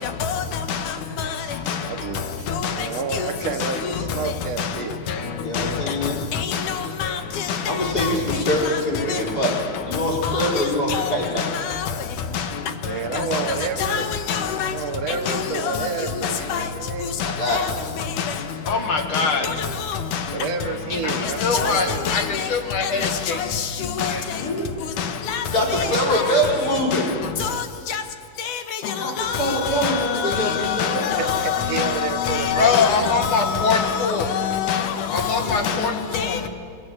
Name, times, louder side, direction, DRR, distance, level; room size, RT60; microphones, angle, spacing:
voice 1, 1.7-2.5 2.7-5.3 12.8-14.2 14.7-17.2 18.5-19.6 20.3-22.0 25.7-26.0 31.2-33.1, right 5 dB, 55° right, 2.5 m, -30 dB
voice 2, 5.4-6.2 7.7-9.5 9.9-11.5 17.2-17.6 24.3-24.7 25.3-27.1 28.8-31.1 35.4-35.6, equal, 25° left, 4.7 m, -24 dB
voice 3, 7.0-7.4 8.0-8.1 10.2-10.5 10.9-11.1 11.4-11.6 13.3-13.4 13.9-14.7 15.3-15.4 15.6-15.8 16.5-16.7 17.5-17.6 18.2-18.3 19.4-19.5 21.1-21.2 21.5-21.7 22.1-22.2 23.0-23.1 24.0-24.1 25.3-25.4 25.9-26.0 26.9-27.0 27.4-27.5 27.9-28.0 29.2-29.5 29.8-35.4 35.6-35.8 36.1-36.4, left 8 dB, 70° left, 2.8 m, -25 dB
voice 4, 18.7-19.5 21.0-21.1 21.4-23.4 24.0-24.2 26.1-26.4 32.5-34.3 35.1-36.5, left 5 dB, 45° left, 2.2 m, -23 dB
21.5 x 21.5 x 9.0 m
omnidirectional pair, 3.8 m